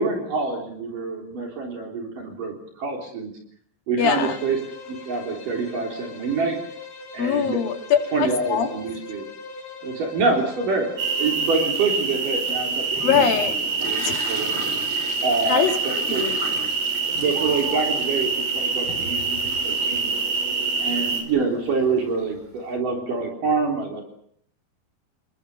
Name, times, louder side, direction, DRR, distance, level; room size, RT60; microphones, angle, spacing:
voice 1, 0.0-3.3 3.9-4.6 4.9-6.6 7.1-7.6 8.1-9.3 9.8-10.9 11.2-13.2 13.9-14.0 14.3-14.6 15.2-16.3 17.1-20.1 20.8-24.0, right 4 dB, 60° right, 1 dB, 5.2 m, -26 dB
voice 2, 4.0-4.4 7.2-8.0 8.5-8.7 13.0-13.6 14.0-14.3 15.5-15.7 16.1-16.6, left 7 dB, 70° left, 5 dB, 3.9 m, -22 dB
Bowed string instrument, 4.0-11.7, left 3 dB, 45° left, 5.5 m, -40 dB
sound 1, 11.0-21.2, right 4 dB, 90° right, 6.2 m, -25 dB
Toilet flush, 12.5-22.7, right 2 dB, 35° right, 4.6 m, -38 dB
29.5 x 20.5 x 6.7 m, 0.65 s
omnidirectional pair, 4.3 m